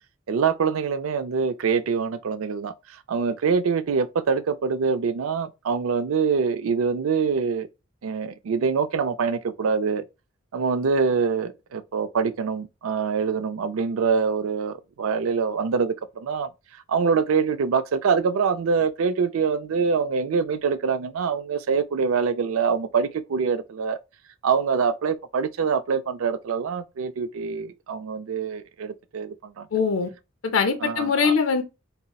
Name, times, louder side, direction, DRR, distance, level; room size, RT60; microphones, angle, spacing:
voice 1, 0.3-2.7 3.1-7.7 8.0-10.0 10.5-16.5 16.9-24.0 24.4-29.7 30.8-31.3, right 5 dB, 80° right, 0.4 m, -24 dB
voice 2, 29.7-30.1 30.5-31.6, left 5 dB, 70° left, 0.5 m, -22 dB
3.9 x 2.0 x 2.3 m
head